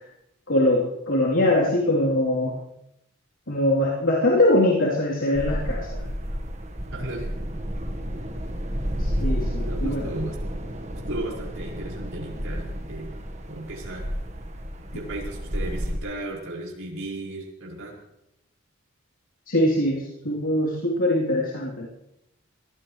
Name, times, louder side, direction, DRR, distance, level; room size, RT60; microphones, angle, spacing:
voice 1, 0.5-2.5 3.5-6.0 9.0-10.0 19.5-21.9, left 1 dB, 65° left, -6 dB, 3.5 m, -22 dB
sound 1, 5.3-16.0, equal, 30° right, 1.5 m, -31 dB
voice 2, 6.9-7.3 8.7-8.9 9.7-10.4 11.1-13.1 13.5-14.1 14.9-17.9, right 1 dB, 70° right, -3 dB, 5.7 m, -35 dB
23.5 x 18.0 x 3.3 m, 0.83 s
head